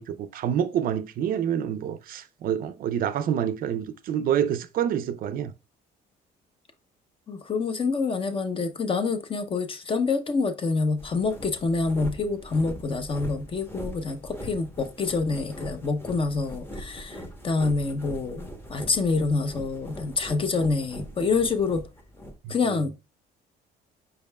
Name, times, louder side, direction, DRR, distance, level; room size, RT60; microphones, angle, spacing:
voice 1, 0.0-5.5 22.4-22.9, right 9 dB, 60° right, 0.5 m, -27 dB
voice 2, 7.3-21.8 22.5-22.9, left 4 dB, 30° left, 0.7 m, -27 dB
sound 1, 11.0-22.4, equal, 15° left, 0.9 m, -41 dB
5.2 x 4.6 x 2.2 m
cardioid pair, 110°, 17 cm